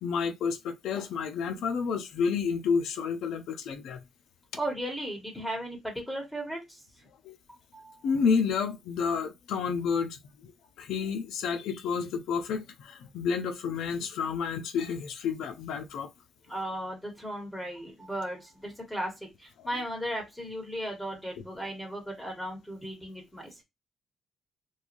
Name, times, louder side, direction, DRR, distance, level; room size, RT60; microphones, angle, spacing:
voice 1, 0.0-4.0 7.2-7.4 8.0-10.5 10.8-16.1, left 6 dB, 80° left, 0.5 m, -30 dB
voice 2, 4.6-6.8 7.7-8.0 16.5-23.6, right 1 dB, 5° left, 1.2 m, -36 dB
3.1 x 2.2 x 2.5 m
cardioid pair, 90°, 0 cm